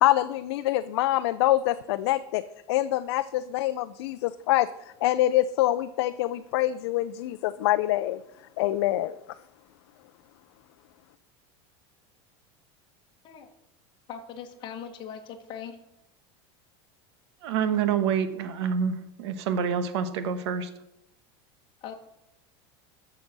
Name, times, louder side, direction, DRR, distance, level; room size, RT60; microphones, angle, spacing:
voice 1, 0.0-2.4 2.7-4.7 5.0-8.2 8.6-9.2, left 15 dB, 80° left, 10 dB, 0.6 m, -25 dB
voice 2, 14.1-15.8 21.8-21.9, left 8 dB, 35° left, 4 dB, 1.7 m, -40 dB
voice 3, 17.4-20.7, right 7 dB, 85° right, 10 dB, 1.4 m, -27 dB
12.5 x 6.7 x 6.1 m, 0.82 s
supercardioid pair, 160°, 14 cm